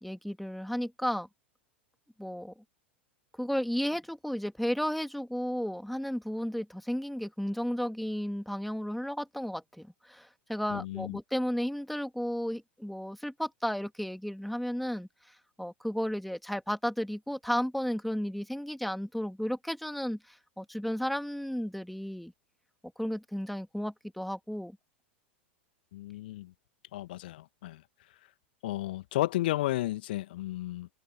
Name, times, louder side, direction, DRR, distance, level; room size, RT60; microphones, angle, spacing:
voice 1, 0.0-1.3 2.2-2.5 3.4-15.1 15.6-22.3 23.0-24.8, equal, ahead, 2.8 m, -33 dB
voice 2, 10.7-11.2 25.9-26.5 26.9-27.8 28.6-30.9, left 16 dB, 55° left, 1.8 m, -33 dB
figure-of-eight pair, 90°, 6 cm